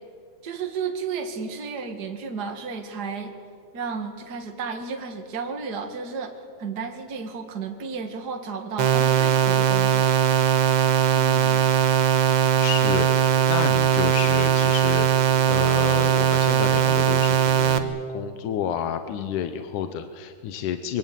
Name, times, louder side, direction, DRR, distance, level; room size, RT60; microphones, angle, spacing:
voice 1, 0.4-3.3 3.7-10.1, right 5 dB, 35° right, 4 dB, 2.2 m, -33 dB
sound 1, 8.8-17.8, right 9 dB, 55° right, 1.3 m, -20 dB
voice 2, 11.1-11.7 12.6-21.0, left 9 dB, 80° left, 9 dB, 2.5 m, -30 dB
24.0 x 23.0 x 9.2 m, 2.1 s
omnidirectional pair, 3.5 m